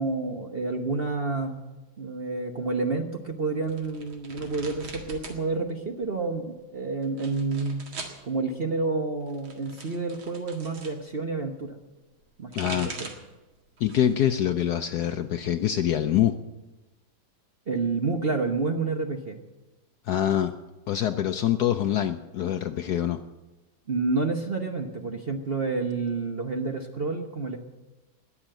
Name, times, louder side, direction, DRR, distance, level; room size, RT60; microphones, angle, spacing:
voice 1, 0.0-1.6 2.0-7.8 8.2-11.8 12.4-13.1 17.7-19.4 23.9-27.6, right 3 dB, 40° right, 4 dB, 0.9 m, -29 dB
sound 1, 3.6-5.4 5.7-6.4 7.0-8.2 9.2-11.0 12.2-13.3 13.8-14.2 14.6-15.6, right 3 dB, 85° right, 2.8 m, -41 dB
voice 2, 12.5-12.9 13.8-16.4 20.0-20.5 20.9-23.2, left 11 dB, 70° left, 9 dB, 1.0 m, -25 dB
20.0 x 7.2 x 8.9 m, 1.1 s
omnidirectional pair, 2.2 m